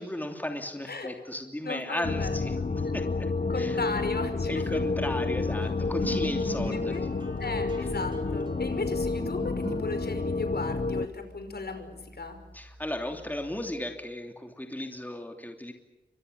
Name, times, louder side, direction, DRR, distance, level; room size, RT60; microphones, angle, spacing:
voice 1, 0.0-3.3 3.6-3.8 4.5-7.1 12.5-15.7, left 1 dB, 10° left, 4 dB, 2.9 m, -35 dB
voice 2, 1.6-2.9 3.5-4.8 6.7-7.0 7.4-12.4, left 3 dB, 65° left, 8 dB, 5.5 m, -36 dB
sound 1, 2.0-11.1, left 3 dB, 45° left, 1.1 m, -30 dB
sound 2, 4.4-14.0, right 2 dB, 25° right, 4.7 m, -45 dB
30.0 x 25.0 x 7.0 m, 1.0 s
wide cardioid pair, 95°, 18 cm